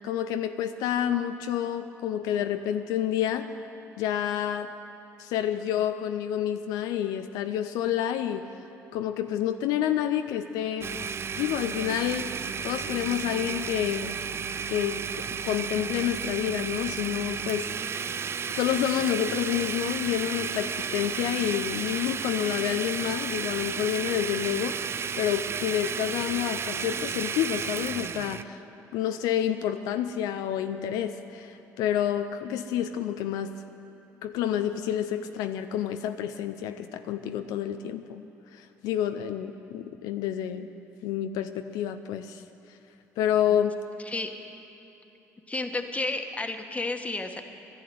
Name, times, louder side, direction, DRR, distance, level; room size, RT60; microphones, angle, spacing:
voice 1, 0.0-3.5 4.0-4.7 5.2-8.4 8.9-10.9 11.4-12.3 12.6-14.2 14.7-17.7 18.6-28.6 28.9-33.5 34.2-38.2 38.5-40.7 41.0-42.4 43.2-43.7, left 10 dB, 80° left, 8 dB, 0.5 m, -29 dB
Domestic sounds home sounds, 10.8-28.4, right 6 dB, 40° right, 0.5 m, -33 dB
voice 2, 45.5-47.4, left 2 dB, 20° left, 5 dB, 1.4 m, -31 dB
11.5 x 11.5 x 9.3 m, 2.9 s
supercardioid pair, 70°, 7 cm